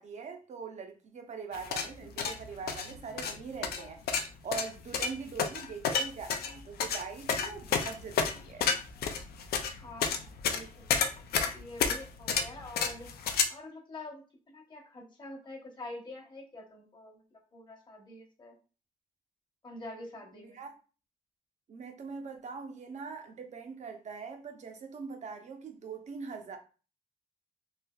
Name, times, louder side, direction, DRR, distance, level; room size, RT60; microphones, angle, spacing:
voice 1, 0.0-8.7 20.3-20.7 21.7-26.6, right 5 dB, 50° right, 0.6 m, -42 dB
sound 1, 1.5-13.4, left 6 dB, 85° left, 0.4 m, -31 dB
voice 2, 9.8-18.5 19.6-20.6, left 2 dB, 30° left, 1.0 m, -47 dB
3.3 x 2.7 x 2.3 m
cardioid pair, 110°, 16 cm